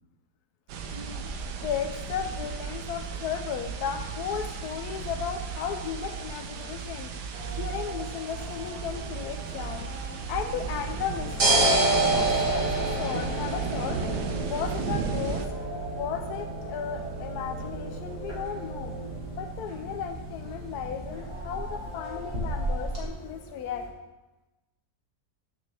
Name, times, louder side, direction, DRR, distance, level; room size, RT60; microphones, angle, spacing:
sound 1, 0.7-15.5, right 5 dB, 80° right, 1.3 m, -35 dB
voice 1, 1.6-7.1 7.6-15.5 15.9-18.9 19.4-23.8, left 8 dB, 75° left, 6 dB, 1.1 m, -35 dB
sound 2, 7.3-23.9, equal, 15° right, 3.3 m, -44 dB
sound 3, 10.9-23.0, right 2 dB, 50° right, 2.4 m, -30 dB
12.5 x 6.3 x 3.4 m, 1.1 s
omnidirectional pair, 1.8 m